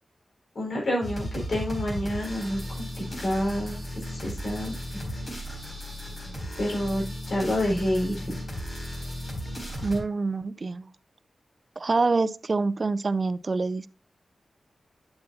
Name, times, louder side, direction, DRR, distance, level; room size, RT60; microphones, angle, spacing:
voice 1, 0.5-3.8 4.1-4.7 6.6-8.2, left 1 dB, 65° left, 4.4 m, -28 dB
sound 1, 1.0-10.0, equal, 30° left, 4.2 m, -35 dB
voice 2, 9.8-10.9 11.8-13.9, right 3 dB, 45° right, 0.4 m, -26 dB
8.8 x 6.9 x 2.7 m
wide cardioid pair, 80°, 0 cm